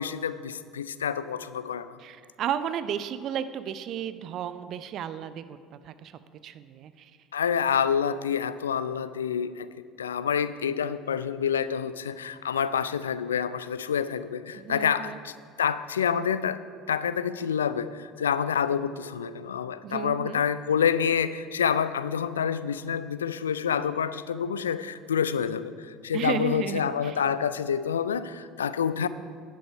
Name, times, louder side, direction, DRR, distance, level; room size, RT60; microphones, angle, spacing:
voice 1, 0.0-2.0 7.3-9.7 10.0-16.6 16.9-29.1, left 7 dB, 80° left, 14 dB, 0.3 m, -28 dB
voice 2, 2.0-5.6 5.8-6.1 6.4-7.1 14.5-15.2 19.8-20.4 26.1-27.2, right 9 dB, 50° right, 13 dB, 0.6 m, -33 dB
11.0 x 10.5 x 4.7 m, 2.2 s
figure-of-eight pair, 65°, 0 cm